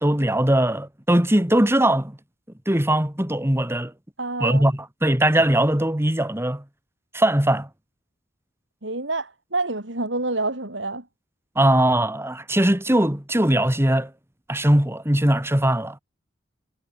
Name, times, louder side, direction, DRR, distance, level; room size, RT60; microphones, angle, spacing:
voice 1, 0.0-2.2 2.7-3.9 4.4-6.6 7.1-7.7 11.6-14.1 14.5-16.0, right 1 dB, 15° right, 2.2 m, -20 dB
voice 2, 4.2-4.6 8.8-11.0, right 2 dB, 70° right, 4.9 m, -27 dB
head